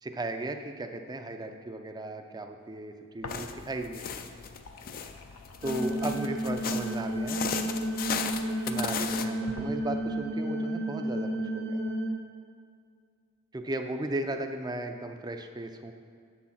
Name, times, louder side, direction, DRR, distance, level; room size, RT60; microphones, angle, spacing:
voice 1, 0.0-4.3 5.6-7.4 8.7-11.8 13.5-15.9, right 2 dB, 20° right, 6 dB, 0.5 m, -36 dB
sound 1, 3.2-4.0 4.3-8.3 8.8-8.9 9.5-10.3, left 3 dB, 80° left, 0.7 m, -47 dB
sound 2, 3.3-9.3, left 6 dB, 40° left, 0.4 m, -36 dB
sound 3, 5.6-12.1, right 1 dB, 50° right, 0.9 m, -32 dB
7.4 x 6.2 x 5.8 m, 2.2 s
head